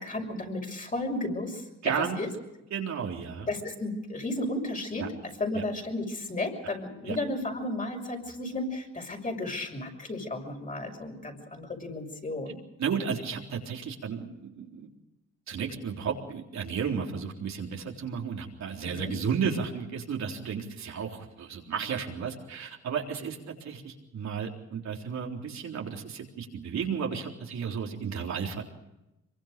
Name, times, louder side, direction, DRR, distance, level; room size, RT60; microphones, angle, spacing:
voice 1, 0.0-1.6 2.2-2.3 3.5-12.6 18.8-19.1, left 2 dB, 25° left, 2 dB, 6.4 m, -33 dB
voice 2, 1.8-2.2 2.7-3.5 5.0-5.1 5.5-5.6 7.1-7.2 12.8-14.9 15.5-28.6, right 6 dB, 65° right, 0 dB, 3.9 m, -33 dB
25.0 x 23.5 x 5.2 m, 0.92 s
cardioid pair, 90°, 30 cm